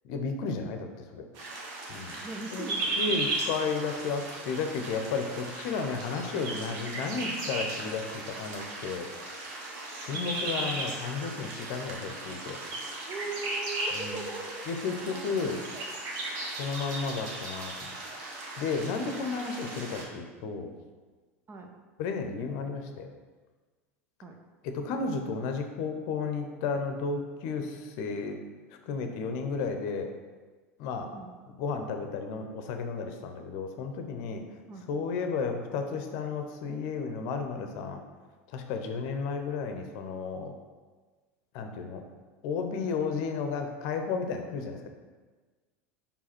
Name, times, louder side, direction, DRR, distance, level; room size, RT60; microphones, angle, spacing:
voice 1, 0.0-1.3 1.9-2.2 2.5-2.7 3.0-9.1 10.0-12.6 13.9-14.2 14.7-15.6 16.4-17.9 18.6-20.7 22.0-23.1 24.6-28.4 28.9-30.1 30.8-31.1 31.6-34.4 34.9-38.0 38.5-40.5 41.5-42.0 42.4-44.9, left 5 dB, 55° left, 5 dB, 0.8 m, -33 dB
sound 1, 1.3-20.0, right 2 dB, 55° right, 1.4 m, -36 dB
voice 2, 2.2-3.1 10.1-10.8 13.1-14.6 14.9-15.3 15.7-15.9 19.3-19.8 21.5-21.7 24.2-24.4 31.1-31.3 34.7-34.8, right 3 dB, 30° right, 4 dB, 0.9 m, -41 dB
5.5 x 4.8 x 4.3 m, 1.4 s
figure-of-eight pair, 80°, 8 cm